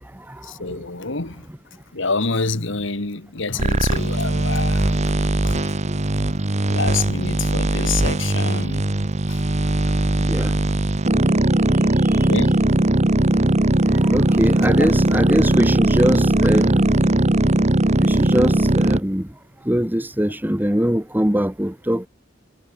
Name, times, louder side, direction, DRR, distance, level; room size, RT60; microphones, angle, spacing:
voice 1, 0.4-1.5 1.9-5.7 6.7-8.8 9.3-9.4 10.7-10.8 12.3-12.6 14.4-14.5 14.8-14.9, left 4 dB, 65° left, 2.0 m, -27 dB
sound 1, 3.6-19.0, right 1 dB, 35° right, 1.1 m, -19 dB
voice 2, 14.0-16.9 18.0-19.3 19.7-22.1, equal, 10° right, 1.8 m, -21 dB
head